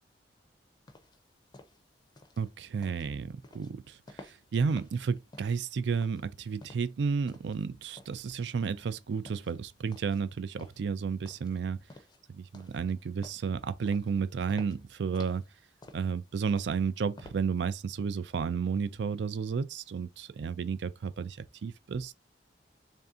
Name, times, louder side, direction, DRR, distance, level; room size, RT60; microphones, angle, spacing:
sound 1, 0.9-17.8, left 2 dB, 25° left, 0.5 m, -54 dB
voice 1, 2.4-11.8 12.3-15.4 15.9-22.1, right 5 dB, 70° right, 0.4 m, -32 dB
3.3 x 2.7 x 3.6 m
head